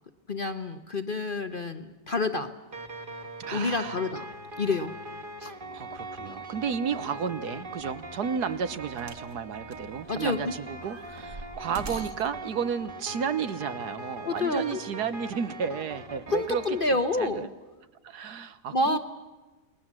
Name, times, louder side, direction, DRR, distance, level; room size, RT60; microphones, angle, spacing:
voice 1, 0.3-2.5 3.5-4.3 4.6-4.9 5.4-5.5 10.1-10.4 11.9-12.0 14.3-14.8 16.3-17.5 18.7-19.0, left 2 dB, 35° left, 9 dB, 1.0 m, -28 dB
sound 1, 2.7-17.4, right 1 dB, 30° right, 1.9 m, -41 dB
voice 2, 3.4-4.0 5.7-16.8 17.2-17.5 18.0-19.0, right 7 dB, 70° right, 12 dB, 1.5 m, -32 dB
sound 2, 9.0-9.3 9.7-10.4 10.8-12.3 13.2-13.3, right 3 dB, 50° right, 1.8 m, -43 dB
29.5 x 20.0 x 7.5 m, 1.2 s
omnidirectional pair, 1.9 m